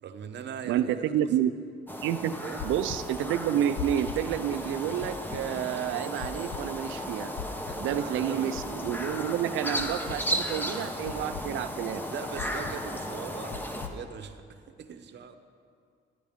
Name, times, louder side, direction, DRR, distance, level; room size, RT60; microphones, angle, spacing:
voice 1, 0.0-1.1 2.4-2.6 7.7-8.5 11.1-11.5 12.1-15.3, right 7 dB, 60° right, 8 dB, 0.9 m, -41 dB
voice 2, 0.6-1.5 2.0-2.3 2.6-7.3 7.8-12.0, right 10 dB, 80° right, 13 dB, 0.5 m, -29 dB
sound 1, 1.9-13.9, equal, 10° left, 1.0 m, -35 dB
sound 2, 2.6-3.0 3.8-4.2 5.0-5.4 6.2-6.6 7.3-7.8 8.5-8.9 9.8-10.2 11.0-11.4 12.4-12.8 13.5-13.9, left 10 dB, 80° left, 0.7 m, -38 dB
15.5 x 10.0 x 3.6 m, 2.1 s
cardioid pair, 90°, 20 cm